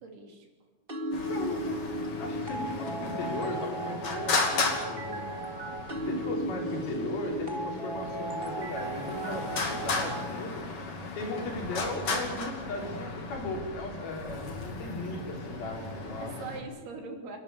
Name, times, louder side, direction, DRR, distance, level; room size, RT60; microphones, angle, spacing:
voice 1, 0.0-0.5 6.1-6.3 15.8-15.9 16.2-17.4, right 4 dB, 90° right, 2 dB, 5.2 m, -42 dB
sound 1, 0.9-10.3, right 1 dB, 20° right, 1.6 m, -36 dB
Traffic noise roadway noise, 1.1-16.6, left 3 dB, 40° left, 3.3 m, -35 dB
voice 2, 1.3-1.8 2.2-5.3 6.1-10.7 11.1-16.3, left 2 dB, 70° left, 1 dB, 5.8 m, -37 dB
29.0 x 12.0 x 9.8 m, 1.3 s
omnidirectional pair, 4.4 m